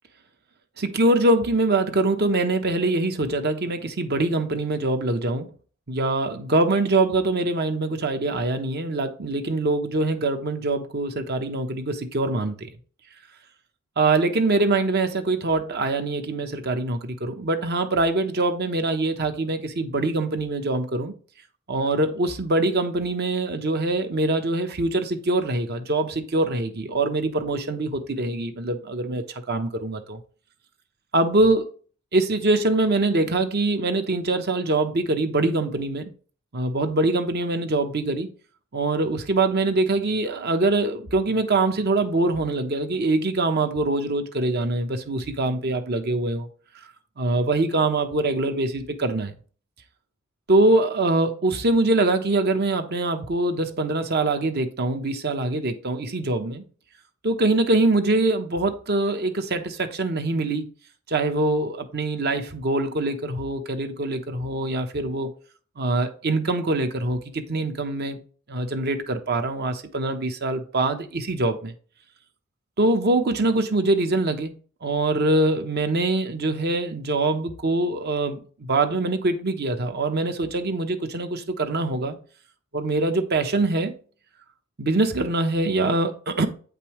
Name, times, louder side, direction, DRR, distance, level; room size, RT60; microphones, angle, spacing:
voice 1, 0.8-5.5 5.9-12.7 14.0-21.1 21.7-30.2 31.1-31.7 32.1-36.1 36.5-38.3 38.7-46.5 47.2-49.3 50.5-56.6 57.2-60.7 61.1-65.3 65.8-68.2 68.5-71.7 72.8-74.5 74.8-82.2 82.7-83.9 84.8-86.5, right 2 dB, 50° right, 0.9 m, -23 dB
8.6 x 5.3 x 3.0 m
head